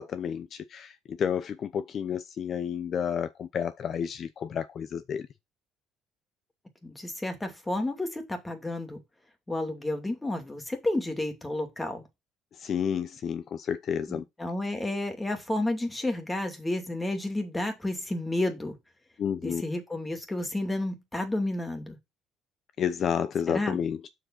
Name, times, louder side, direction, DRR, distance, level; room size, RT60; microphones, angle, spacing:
voice 1, 0.0-5.2 12.6-14.2 19.2-19.6 22.8-24.1, left 8 dB, 50° left, 0.7 m, -31 dB
voice 2, 6.8-9.0 9.5-12.0 14.1-18.8 19.4-22.0 23.5-23.8, left 1 dB, 10° left, 2.5 m, -31 dB
6.3 x 4.9 x 6.0 m
supercardioid pair, 90°, 0 cm